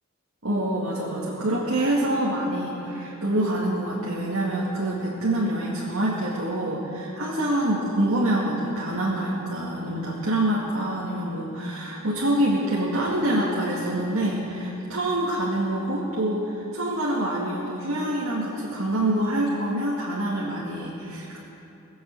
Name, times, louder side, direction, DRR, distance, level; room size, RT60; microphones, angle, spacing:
voice 1, 0.4-21.4, right 1 dB, 70° right, -5 dB, 2.2 m, -26 dB
21.0 x 7.9 x 8.0 m, 3.0 s
head